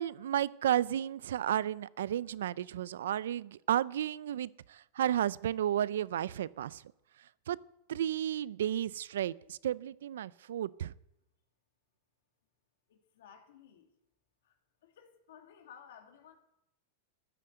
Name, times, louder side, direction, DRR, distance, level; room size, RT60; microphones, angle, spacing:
voice 1, 0.0-6.8 7.5-7.6 7.9-10.9, right 11 dB, 85° right, 0.5 m, -33 dB
voice 2, 12.9-13.9 14.4-14.5 14.8-16.3, left 8 dB, 75° left, 2.3 m, -56 dB
13.5 x 10.0 x 7.9 m
supercardioid pair, 135°, 0 cm